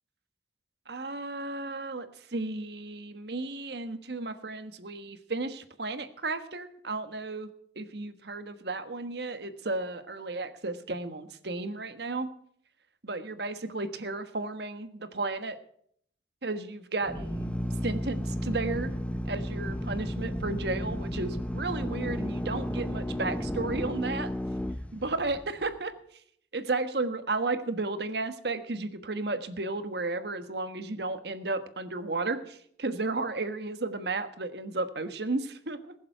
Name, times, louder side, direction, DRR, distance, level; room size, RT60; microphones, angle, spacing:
voice 1, 0.9-7.5 7.7-12.3 13.0-15.6 16.4-17.5 17.8-18.9 19.3-24.3 24.9-25.9 26.5-35.9, right 3 dB, 65° right, 10 dB, 1.3 m, -33 dB
Drill, 17.0-25.7, equal, 5° left, 0.6 m, -33 dB
20.5 x 7.3 x 6.7 m, 0.64 s
head